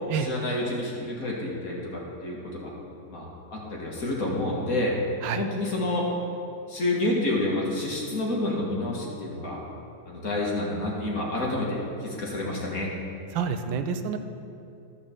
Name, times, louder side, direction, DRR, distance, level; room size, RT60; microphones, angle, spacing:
voice 1, 0.1-2.7 3.1-5.0 5.3-6.1 6.7-9.6 10.1-12.9, left 1 dB, 50° left, -3 dB, 2.2 m, -29 dB
voice 2, 13.3-14.2, right 6 dB, 85° right, 7 dB, 1.4 m, -28 dB
12.5 x 5.4 x 7.5 m, 2.6 s
omnidirectional pair, 2.0 m